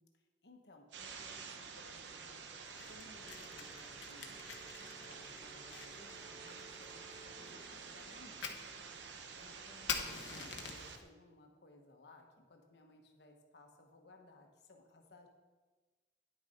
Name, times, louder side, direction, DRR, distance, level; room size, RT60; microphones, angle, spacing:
voice 1, 0.0-2.5 2.9-4.4 5.0-8.6 9.3-15.3, left 2 dB, 65° left, 3 dB, 1.1 m, -61 dB
sound 1, 0.9-11.0, right 5 dB, 75° right, 0.7 m, -50 dB
sound 2, 1.2-9.4, right 2 dB, 20° right, 0.7 m, -61 dB
Fire, 2.6-11.0, left 6 dB, 90° left, 1.0 m, -47 dB
9.8 x 6.4 x 4.3 m, 1.3 s
head